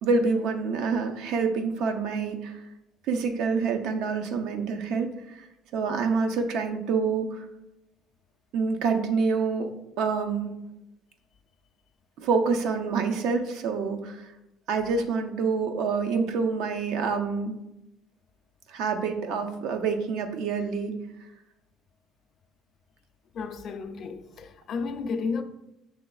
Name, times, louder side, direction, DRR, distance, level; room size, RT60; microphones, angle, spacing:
voice 1, 0.0-2.6 3.1-5.5 5.7-7.5 8.5-9.7 10.0-10.5 12.2-14.3 14.7-17.6 18.7-20.9, right 5 dB, 75° right, 0.5 m, -27 dB
voice 2, 23.3-25.4, left 4 dB, 50° left, 0.4 m, -32 dB
5.9 x 3.1 x 2.3 m
cardioid pair, 110°, 0 cm